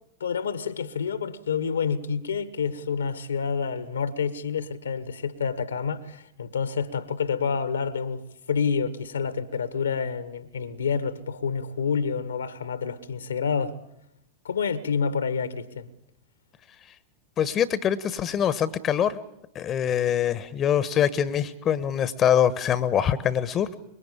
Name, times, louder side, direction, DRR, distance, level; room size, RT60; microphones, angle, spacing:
voice 1, 0.2-13.8 14.4-15.9, left 6 dB, 70° left, 1.5 m, -28 dB
voice 2, 17.4-19.2 19.5-23.7, left 9 dB, 30° left, 1.3 m, -24 dB
25.5 x 22.5 x 8.6 m
figure-of-eight pair, 90°, 0 cm